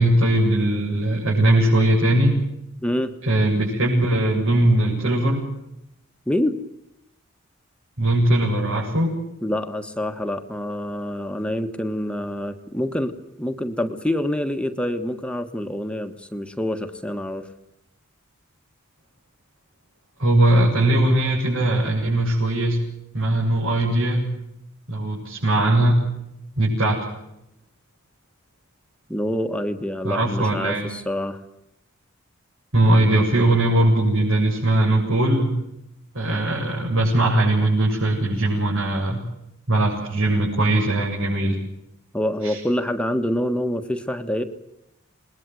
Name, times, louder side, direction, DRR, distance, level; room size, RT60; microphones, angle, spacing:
voice 1, 0.0-2.4 3.2-5.5 8.0-9.2 20.2-22.8 23.1-24.3 24.9-26.0 26.6-27.0 30.0-30.9 32.7-35.6 36.1-39.2 39.7-41.6 42.4-42.6, right 1 dB, 80° right, -4 dB, 7.6 m, -20 dB
voice 2, 2.8-3.1 6.3-6.6 9.4-13.1 13.4-17.5 29.1-31.4 42.1-44.4, left 1 dB, 5° left, 7 dB, 1.5 m, -26 dB
28.5 x 21.0 x 7.9 m, 0.85 s
head